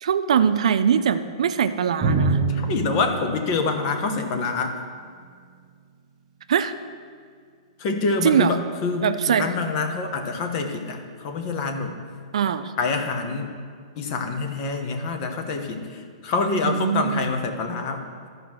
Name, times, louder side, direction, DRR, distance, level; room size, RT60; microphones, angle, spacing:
voice 1, 0.0-2.4 6.5-6.8 8.2-8.5 9.0-9.5 12.3-12.7 16.6-17.3, right 8 dB, 75° right, 10 dB, 0.5 m, -22 dB
Drum, 2.0-5.5, right 3 dB, 30° right, 1.2 m, -27 dB
voice 2, 2.5-4.7 7.8-12.0 12.8-13.5 14.0-18.0, left 4 dB, 40° left, 5 dB, 1.1 m, -26 dB
12.5 x 5.1 x 6.2 m, 2.1 s
hypercardioid pair, 150°, 3 cm